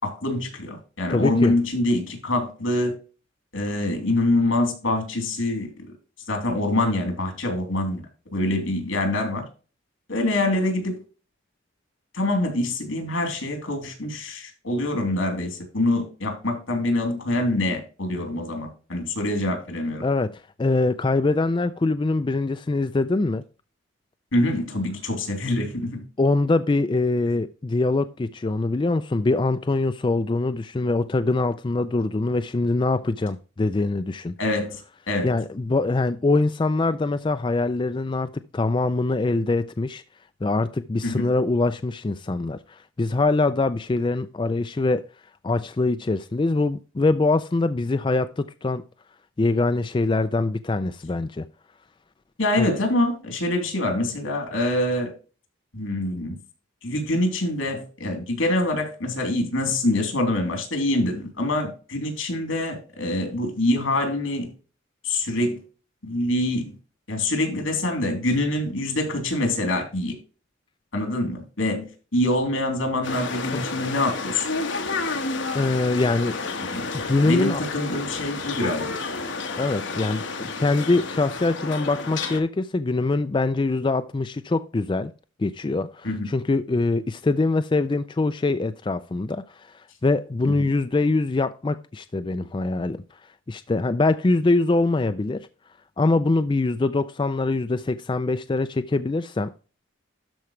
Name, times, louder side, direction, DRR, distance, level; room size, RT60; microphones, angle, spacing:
voice 1, 0.0-2.9 3.5-5.7 6.3-8.0 8.3-9.4 10.1-11.0 12.1-20.0 24.3-26.0 34.4-34.8 35.1-35.3 41.0-41.3 52.4-55.1 55.7-56.3 56.8-64.5 65.0-65.6 66.0-66.7 67.1-70.2 70.9-74.5 76.7-76.9 77.2-78.9 86.0-86.3 90.5-90.6, left 1 dB, 80° left, 3.3 m, -25 dB
voice 2, 1.1-1.5 20.0-23.4 26.2-34.4 35.2-40.0 40.4-45.0 45.4-48.8 49.4-51.4 52.6-52.7 73.5-73.6 75.5-76.4 76.9-77.6 79.6-85.1 85.4-93.0 93.5-95.5 96.0-99.5, left 3 dB, 25° left, 0.3 m, -23 dB
sound 1, 73.0-82.4, left 4 dB, 65° left, 1.3 m, -31 dB
12.5 x 4.9 x 3.2 m
head